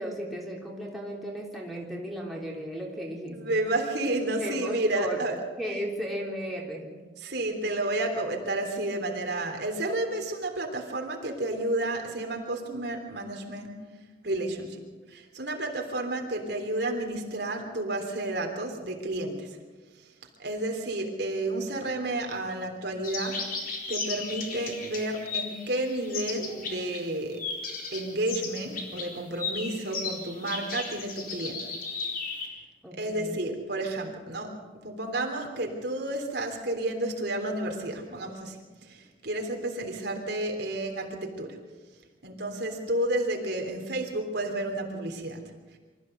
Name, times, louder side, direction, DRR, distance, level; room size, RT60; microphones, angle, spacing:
voice 1, 0.0-3.6 4.4-5.3 5.6-7.0 32.8-33.5, equal, ahead, -3 dB, 3.5 m, -35 dB
voice 2, 3.3-5.4 7.2-13.9 14.2-14.8 15.1-19.6 20.0-20.1 20.4-27.4 27.9-31.8 33.0-41.6 42.2-45.5, right 1 dB, 60° right, 2 dB, 3.4 m, -31 dB
sound 1, 23.0-27.0 27.3-32.5, left 4 dB, 50° left, 4.2 m, -35 dB
25.0 x 15.0 x 8.0 m, 1.4 s
head